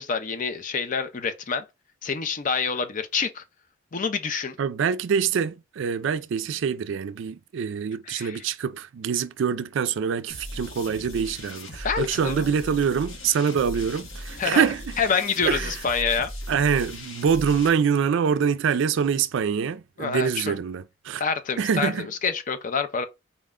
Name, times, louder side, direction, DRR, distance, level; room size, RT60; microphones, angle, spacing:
voice 1, 0.0-1.6 2.0-3.4 3.9-4.6 8.1-8.4 11.8-12.5 14.4-14.7 15.0-16.3 20.0-20.6 21.2-23.1, left 5 dB, 40° left, 0.5 m, -27 dB
voice 2, 4.6-15.0 15.5-15.7 16.5-21.2 21.6-22.1, right 7 dB, 65° right, 0.3 m, -25 dB
sound 1, 10.3-17.7, left 1 dB, 75° left, 1.4 m, -38 dB
4.1 x 2.2 x 3.6 m
head